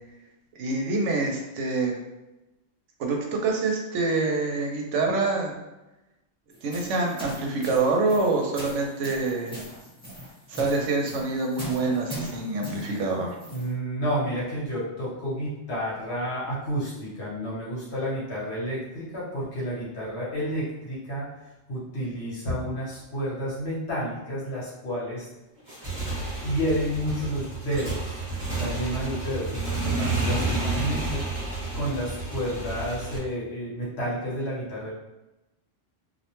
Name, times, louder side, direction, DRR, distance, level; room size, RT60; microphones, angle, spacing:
voice 1, 0.5-2.0 3.0-5.6 6.6-9.6 10.5-13.3, right 3 dB, 75° right, 1 dB, 0.9 m, -26 dB
sound 1, 6.5-13.7, right 1 dB, 5° left, 0.8 m, -40 dB
voice 2, 13.5-21.3 21.7-25.3 26.4-28.2 28.6-34.9, equal, 60° left, -6 dB, 1.1 m, -30 dB
Motorcycle / Engine, 25.6-33.2, right 2 dB, 35° right, 1.1 m, -30 dB
2.5 x 2.1 x 2.9 m, 0.99 s
omnidirectional pair, 1.3 m